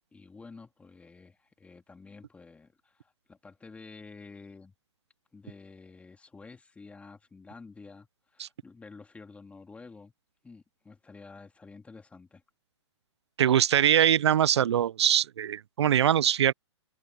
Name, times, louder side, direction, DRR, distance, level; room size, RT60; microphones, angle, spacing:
voice 1, 0.1-4.7 5.3-10.1 10.4-12.4, left 4 dB, 10° left, 2.5 m, -50 dB
voice 2, 13.4-16.5, right 10 dB, 65° right, 0.7 m, -23 dB
open air
hypercardioid pair, 125°, 15 cm